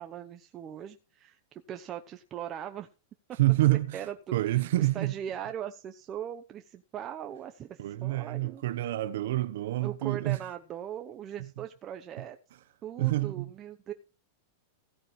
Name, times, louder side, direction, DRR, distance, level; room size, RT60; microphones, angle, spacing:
voice 1, 0.0-2.9 3.9-4.1 4.4-8.9 9.8-12.4 12.8-13.9, right 10 dB, 30° right, 0.8 m, -40 dB
voice 2, 3.4-4.0 4.3-5.1 7.8-10.4 11.4-11.6 12.2-12.3 13.0-13.5, right 17 dB, 70° right, 0.9 m, -27 dB
16.0 x 9.6 x 3.2 m
supercardioid pair, 140°, 0 cm